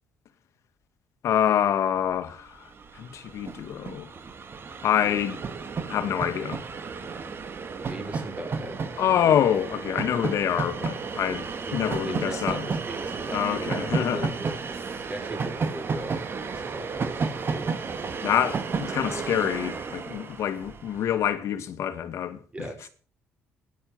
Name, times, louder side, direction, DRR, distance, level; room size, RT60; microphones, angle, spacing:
voice 1, 1.2-2.6 2.9-4.1 4.8-5.4 5.9-6.6 9.0-12.7 13.3-14.3 18.2-22.4, left 9 dB, 65° left, 1.9 m, -26 dB
Train, 2.5-2.6 2.7-21.1, right 5 dB, 45° right, 2.0 m, -32 dB
voice 2, 7.9-8.8 11.7-14.6 15.1-17.8 22.5-22.9, right 1 dB, 20° right, 5.2 m, -38 dB
12.5 x 10.5 x 7.8 m
supercardioid pair, 60°, 5 cm